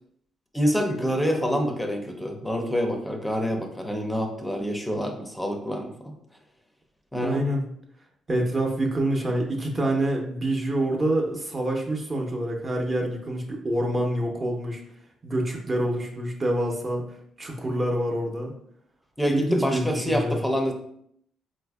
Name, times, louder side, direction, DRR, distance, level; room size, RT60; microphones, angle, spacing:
voice 1, 0.5-6.1 7.1-7.4 19.2-20.7, equal, 5° left, 4 dB, 0.5 m, -26 dB
voice 2, 7.2-7.7 8.3-14.8 15.2-17.1 17.4-18.5 19.3-20.4, right 1 dB, 35° right, 1 dB, 0.6 m, -26 dB
4.1 x 2.5 x 2.2 m, 0.69 s
cardioid pair, 90°, 0 cm